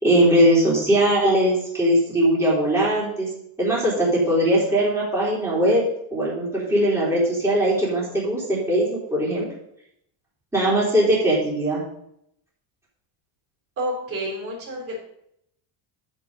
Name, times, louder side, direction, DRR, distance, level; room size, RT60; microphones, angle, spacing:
voice 1, 0.0-3.3 3.6-5.8 6.1-9.5 10.5-11.8, right 1 dB, 5° right, -7 dB, 3.4 m, -20 dB
voice 2, 13.8-14.9, equal, 30° right, -2 dB, 3.5 m, -29 dB
9.8 x 5.5 x 5.3 m, 0.75 s
cardioid pair, 170°, 44 cm